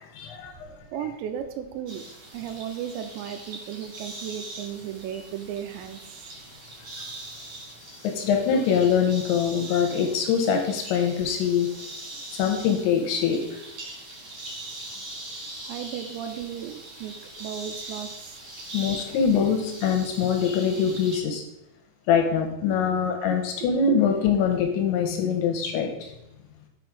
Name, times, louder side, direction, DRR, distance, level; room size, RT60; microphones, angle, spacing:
voice 1, 0.0-0.8 8.0-11.7 12.3-13.6 18.7-21.4 22.1-26.1, left 7 dB, 80° left, 4 dB, 2.9 m, -24 dB
voice 2, 0.9-2.0 2.3-6.3 7.9-8.1 15.7-18.4 22.8-22.9, right 9 dB, 85° right, 7 dB, 2.5 m, -35 dB
sound 1, 1.9-21.2, right 2 dB, 40° right, 2.4 m, -41 dB
6.2 x 6.0 x 4.9 m, 0.86 s
omnidirectional pair, 5.7 m